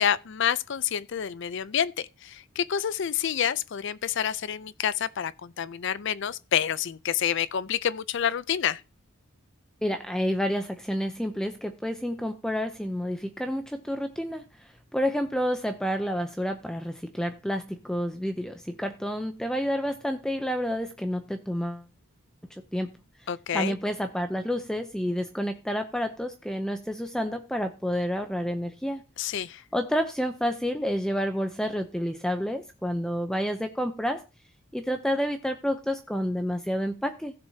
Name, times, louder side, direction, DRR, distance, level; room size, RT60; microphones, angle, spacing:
voice 1, 0.0-8.8 23.3-23.7 29.2-29.6, left 9 dB, 60° left, 0.4 m, -28 dB
voice 2, 9.8-14.4 14.9-21.8 22.7-22.9 23.5-29.0 29.7-34.2 34.7-37.3, equal, 5° left, 0.5 m, -29 dB
16.0 x 6.9 x 2.8 m
head